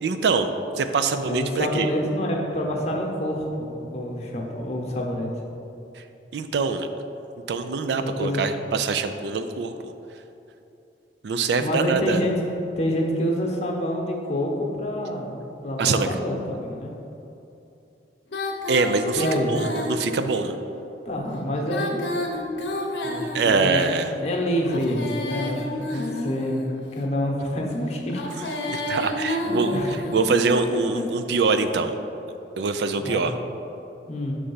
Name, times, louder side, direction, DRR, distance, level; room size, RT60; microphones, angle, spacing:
voice 1, 0.0-0.5 0.8-1.9 6.3-6.9 7.5-9.9 11.2-12.2 15.8-16.1 18.7-20.6 23.3-24.1 28.7-29.8 30.1-32.0 32.6-33.4, right 4 dB, 70° right, 8 dB, 0.4 m, -24 dB
voice 2, 1.2-5.3 8.0-8.4 11.6-12.3 12.8-16.9 19.1-19.5 21.0-22.1 23.0-26.6 26.9-28.2 29.4-29.9 30.9-31.0 33.0-33.3 34.1-34.3, equal, 40° left, -1 dB, 0.9 m, -27 dB
Female singing, 18.3-20.4 21.5-23.9 24.6-26.8 28.1-30.3, left 1 dB, 70° left, 0.7 m, -30 dB
6.4 x 3.4 x 5.5 m, 2.8 s
head